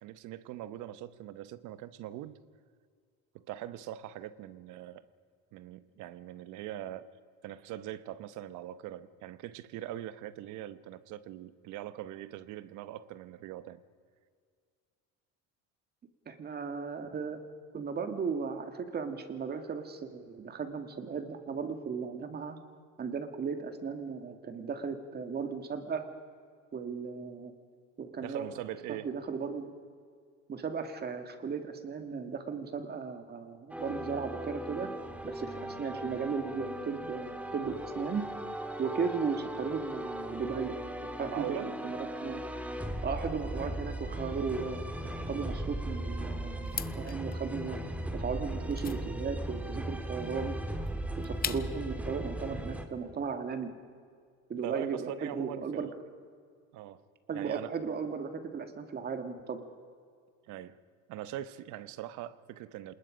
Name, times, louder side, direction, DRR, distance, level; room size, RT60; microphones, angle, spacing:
voice 1, 0.0-2.4 3.3-5.0 5.5-7.1 7.4-13.8 28.2-29.1 41.3-41.7 54.6-55.9 56.7-57.0 57.3-57.7 60.5-60.8 61.1-62.9, right 13 dB, 70° right, 14 dB, 1.0 m, -42 dB
voice 2, 16.3-17.4 17.7-22.6 23.0-26.1 26.7-27.5 28.0-28.5 28.9-29.7 30.5-34.9 35.2-38.3 38.8-40.8 41.1-42.4 43.0-44.9 45.3-47.8 48.1-50.6 51.2-53.8 54.5-55.9 57.3-59.6, right 5 dB, 30° right, 7 dB, 2.0 m, -36 dB
sound 1, 33.7-52.9, right 1 dB, 5° right, 1.6 m, -38 dB
sound 2, 46.6-51.9, left 9 dB, 30° left, 0.7 m, -42 dB
27.0 x 20.5 x 5.1 m, 2.1 s
cardioid pair, 135°, 31 cm